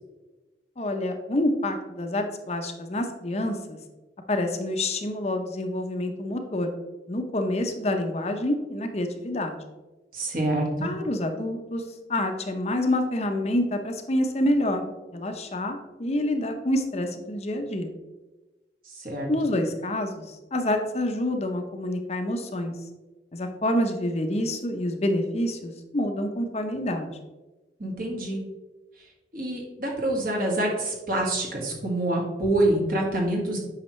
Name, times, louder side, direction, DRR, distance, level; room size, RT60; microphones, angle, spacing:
voice 1, 0.8-3.8 4.3-6.7 7.1-9.6 10.8-11.8 12.1-14.8 15.1-17.9 19.3-20.2 20.5-22.7 23.3-27.1, left 1 dB, 35° left, 5 dB, 0.7 m, -27 dB
voice 2, 10.1-10.9 18.9-19.3 27.8-28.4 29.3-33.6, right 1 dB, 55° right, -1 dB, 1.8 m, -26 dB
8.6 x 5.7 x 3.1 m, 1.1 s
head